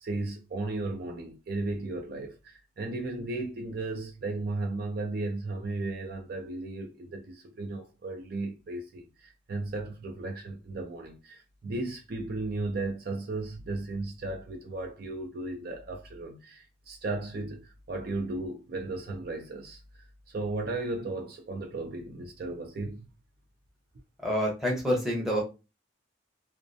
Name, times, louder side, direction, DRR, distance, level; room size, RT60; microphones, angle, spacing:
voice 1, 0.0-19.8 20.3-23.1, right 2 dB, 50° right, 0.4 m, -35 dB
voice 2, 24.2-25.4, equal, ahead, 0.7 m, -27 dB
2.4 x 2.0 x 2.5 m
head